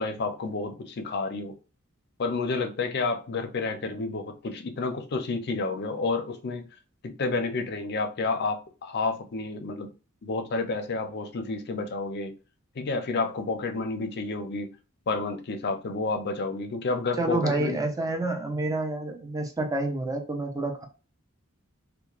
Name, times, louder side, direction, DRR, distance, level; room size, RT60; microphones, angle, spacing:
voice 1, 0.0-1.5 2.2-6.6 7.0-9.9 10.2-12.3 12.8-14.7 15.1-17.8, left 3 dB, 50° left, 6 dB, 0.5 m, -30 dB
voice 2, 17.2-20.8, right 2 dB, 15° right, 4 dB, 0.4 m, -28 dB
2.9 x 2.1 x 2.4 m, 0.34 s
head